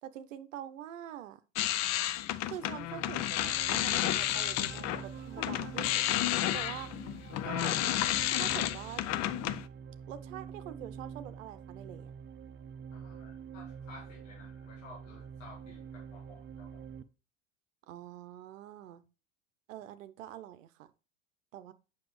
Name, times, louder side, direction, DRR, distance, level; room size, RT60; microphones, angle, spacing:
voice 1, 0.0-1.4 2.5-6.9 7.4-7.8 8.3-9.1 10.1-12.1 17.9-19.0 19.7-20.9 21.5-21.7, right 11 dB, 75° right, 12 dB, 0.7 m, -45 dB
sound 1, 1.5-5.1 5.4-9.6, left 13 dB, 45° left, 0.6 m, -31 dB
sound 2, 2.7-17.0, right 7 dB, 30° right, 0.7 m, -46 dB
voice 2, 12.9-16.9, left 3 dB, 75° left, -3 dB, 2.1 m, -54 dB
7.7 x 6.0 x 3.2 m, 0.33 s
hypercardioid pair, 75°, 39 cm